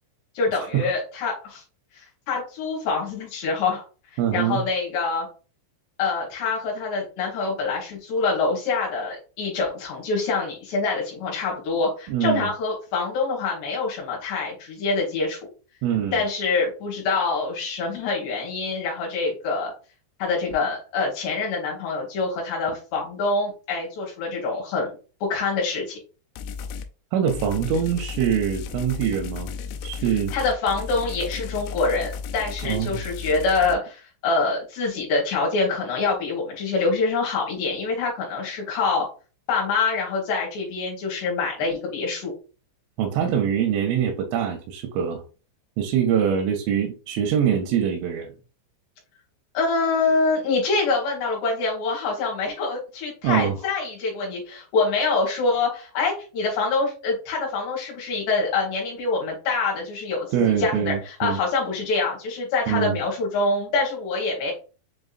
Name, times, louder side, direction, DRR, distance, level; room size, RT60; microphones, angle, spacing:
voice 1, 0.3-1.6 2.0-3.8 4.3-5.3 6.0-15.4 16.1-19.7 20.2-24.9 25.3-26.0 30.3-39.1 39.5-42.3 49.5-64.5, left 4 dB, 70° left, -3 dB, 3.1 m, -25 dB
voice 2, 4.2-4.6 12.1-12.5 15.8-16.2 27.1-29.5 29.8-30.4 32.6-33.1 43.0-45.2 45.8-48.3 53.2-53.5 60.3-61.4 62.7-63.0, right 8 dB, 90° right, 3 dB, 3.2 m, -24 dB
sound 1, 26.4-26.9 27.3-33.8, left 6 dB, 85° left, 3.0 m, -34 dB
7.3 x 2.7 x 2.4 m, 0.35 s
omnidirectional pair, 5.4 m